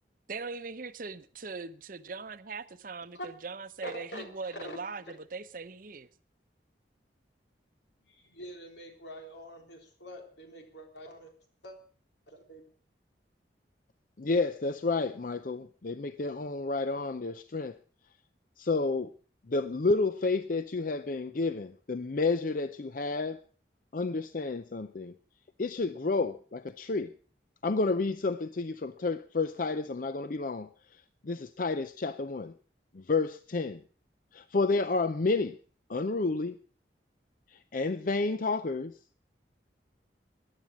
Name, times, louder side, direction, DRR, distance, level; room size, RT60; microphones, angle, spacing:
voice 1, 0.3-6.1, right 4 dB, 50° right, 0.8 m, -40 dB
voice 2, 3.8-4.8 8.1-11.3 11.6-11.8 12.3-12.7, equal, 85° left, 3.7 m, -44 dB
voice 3, 14.2-17.8 18.6-19.1 19.4-23.4 23.9-25.1 25.6-27.1 27.6-32.5 32.9-33.8 34.3-35.6 35.9-36.6 37.5-39.0, left 3 dB, 50° left, 0.6 m, -30 dB
14.5 x 10.5 x 6.1 m
head